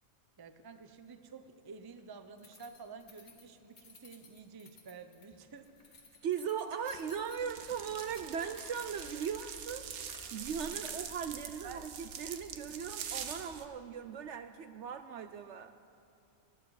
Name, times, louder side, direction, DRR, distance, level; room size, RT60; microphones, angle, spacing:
voice 1, 0.4-5.7 11.6-11.9, right 5 dB, 25° right, 9 dB, 0.5 m, -50 dB
sound 1, 1.9-2.0 2.6-2.8 3.3-3.7 5.5-7.1 7.6-9.0 9.2-11.1 11.4-13.2, left 1 dB, 25° left, 2.1 m, -60 dB
Keys jangling, 2.4-11.4, left 4 dB, 85° left, 2.1 m, -58 dB
voice 2, 6.2-9.9 10.3-15.7, right 7 dB, 65° right, 10 dB, 0.8 m, -38 dB
sound 2, 6.8-13.7, right 7 dB, 85° right, 1.4 m, -44 dB
20.5 x 13.0 x 4.9 m, 2.8 s
omnidirectional pair, 1.5 m